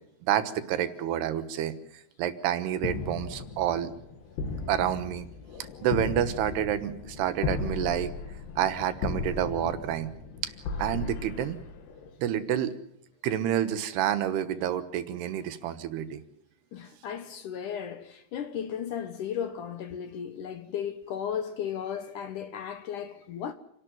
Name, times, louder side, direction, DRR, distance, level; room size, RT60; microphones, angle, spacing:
voice 1, 0.2-1.7 2.2-3.9 4.7-5.3 5.8-8.1 8.6-10.1 10.4-10.5 10.8-11.6 12.2-12.7 13.2-16.2, right 10 dB, 80° right, 3.3 m, -28 dB
sound 1, 2.8-12.3, left 4 dB, 80° left, 4.1 m, -36 dB
voice 2, 16.7-23.5, left 8 dB, 65° left, 2.3 m, -35 dB
28.5 x 12.0 x 9.2 m
omnidirectional pair, 4.6 m